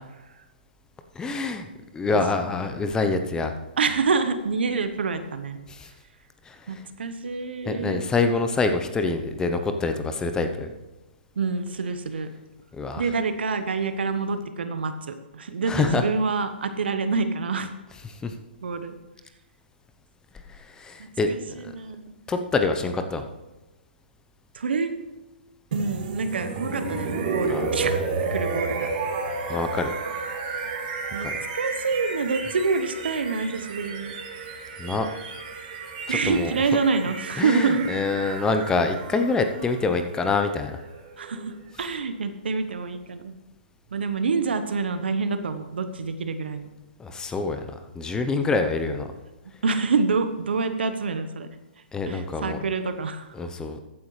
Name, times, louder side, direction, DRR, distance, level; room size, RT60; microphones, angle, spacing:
voice 1, 1.1-1.7 1.9-3.5 5.7-5.9 6.5-6.8 7.7-10.7 12.7-13.0 15.7-16.0 18.0-18.3 20.8-21.3 21.6-21.7 22.3-23.3 27.5-27.9 29.5-29.9 31.2-31.3 34.8-35.1 36.1-36.5 37.4-40.8 47.0-49.1 51.9-52.6 53.3-53.8, left 3 dB, 10° left, 7 dB, 0.8 m, -26 dB
voice 2, 3.8-5.6 6.7-8.0 11.4-12.3 13.0-17.7 18.6-18.9 21.0-22.2 24.5-25.0 25.7-28.0 28.3-28.9 31.1-31.3 31.5-34.1 36.1-37.8 41.2-43.3 43.9-46.7 49.6-51.5 52.1-53.3, right 4 dB, 75° right, 9 dB, 1.2 m, -27 dB
sound 1, 25.7-41.6, right 4 dB, 50° right, 2.7 m, -32 dB
14.5 x 9.5 x 3.3 m, 1.1 s
hypercardioid pair, 130°, 6 cm